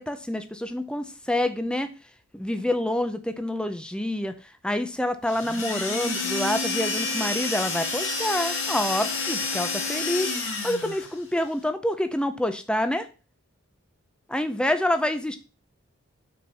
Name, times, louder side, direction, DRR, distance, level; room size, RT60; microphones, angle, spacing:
voice 1, 0.0-1.9 2.3-4.3 4.6-13.1 14.3-15.4, left 1 dB, 5° left, 9 dB, 0.5 m, -27 dB
sound 1, 5.3-11.1, left 3 dB, 60° left, 2.1 m, -29 dB
6.1 x 4.5 x 5.7 m, 0.33 s
head